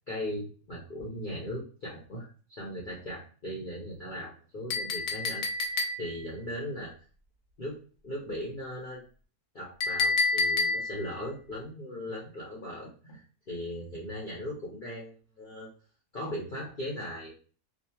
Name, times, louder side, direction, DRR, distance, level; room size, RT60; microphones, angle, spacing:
voice 1, 0.1-5.5 5.7-6.9 7.6-9.0 9.5-15.7 16.1-17.3, equal, 45° left, -5 dB, 0.7 m, -38 dB
Chink clink, 4.7-6.3 9.8-11.1, left 3 dB, 75° left, 1.0 m, -28 dB
2.8 x 2.5 x 2.3 m, 0.38 s
omnidirectional pair, 1.6 m